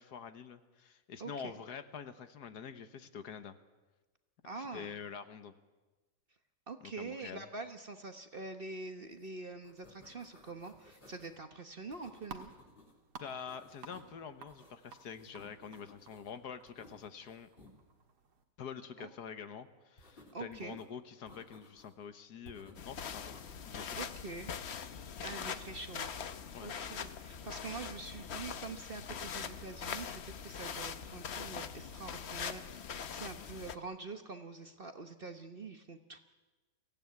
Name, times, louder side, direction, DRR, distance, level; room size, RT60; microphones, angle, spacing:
voice 1, 0.0-3.5 4.6-5.5 6.8-7.5 13.2-17.5 18.6-23.4 23.6-24.0 26.5-27.1, left 7 dB, 70° left, 10 dB, 1.6 m, -46 dB
voice 2, 1.2-1.5 4.4-4.9 6.7-12.5 19.0-19.1 20.3-20.8 24.0-24.5 25.2-26.1 26.6-36.2, right 3 dB, 40° right, 7 dB, 1.1 m, -45 dB
sound 1, 9.1-9.3 9.5-11.4 11.9-12.9 13.3-14.2 14.5-16.3 16.7-17.7 20.0-20.9 21.3-22.0 22.4-23.5 24.3-24.8, left 2 dB, 30° left, 4.1 m, -59 dB
sound 2, 11.7-18.4, right 5 dB, 70° right, 2.2 m, -55 dB
sound 3, 22.8-33.7, left 7 dB, 50° left, 1.0 m, -42 dB
24.0 x 16.0 x 9.5 m, 1.2 s
omnidirectional pair, 1.8 m